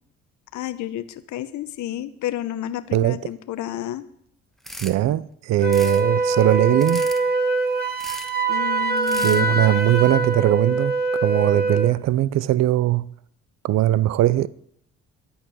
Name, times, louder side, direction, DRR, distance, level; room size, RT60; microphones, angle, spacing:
voice 1, 0.5-4.0 8.5-9.7 10.1-10.3, left 12 dB, 70° left, 0.8 m, -31 dB
sound 1, 4.6-5.0 5.6-6.0 6.8-7.2 8.0-8.3 9.0-9.4, left 1 dB, ahead, 1.1 m, -37 dB
voice 2, 4.8-7.1 9.2-13.1 13.6-14.5, right 14 dB, 60° right, 0.5 m, -20 dB
Wind instrument woodwind instrument, 5.6-11.9, right 3 dB, 30° right, 1.7 m, -23 dB
11.0 x 8.8 x 6.2 m
cardioid pair, 90°, 30 cm